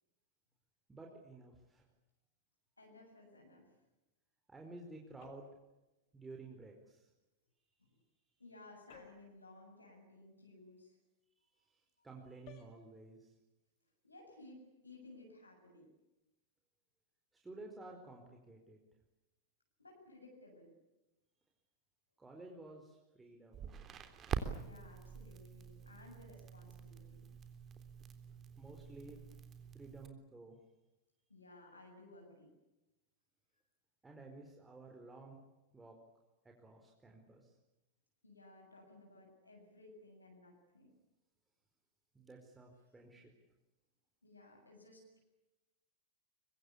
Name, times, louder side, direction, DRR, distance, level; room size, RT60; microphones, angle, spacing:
voice 1, 0.9-1.8 4.5-5.5 6.1-7.1 11.5-13.3 17.3-18.8 22.2-23.7 28.6-29.2 29.7-30.6 34.0-35.4 35.7-36.0 36.4-37.5 42.1-43.3, right 2 dB, 10° right, 1 dB, 4.7 m, -53 dB
voice 2, 2.8-3.8 7.8-8.0 8.4-11.0 11.4-11.6 12.0-12.1 14.0-15.9 19.8-20.8 24.6-27.3 31.3-32.5 38.2-40.9 44.2-45.2, left 2 dB, 85° left, 0 dB, 7.6 m, -58 dB
sound 1, 5.2-5.7 8.9-9.4 12.5-12.8, left 8 dB, 45° left, 6.0 m, -58 dB
Crackle, 23.5-30.1, right 7 dB, 30° right, 3.6 m, -46 dB
25.0 x 24.0 x 8.6 m, 1.0 s
figure-of-eight pair, 90°, 0 cm